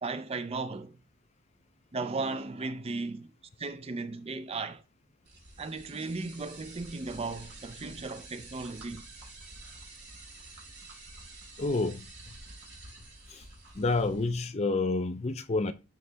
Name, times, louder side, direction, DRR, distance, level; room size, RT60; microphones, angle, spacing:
voice 1, 0.0-1.0 1.9-3.3 3.6-4.8 5.6-9.1, right 3 dB, 25° right, 0.4 m, -36 dB
sound 1, 5.2-14.4, right 2 dB, 50° right, 2.6 m, -49 dB
voice 2, 11.6-12.0 13.3-13.4 13.8-15.7, left 3 dB, 30° left, 0.5 m, -29 dB
11.0 x 3.8 x 3.4 m
head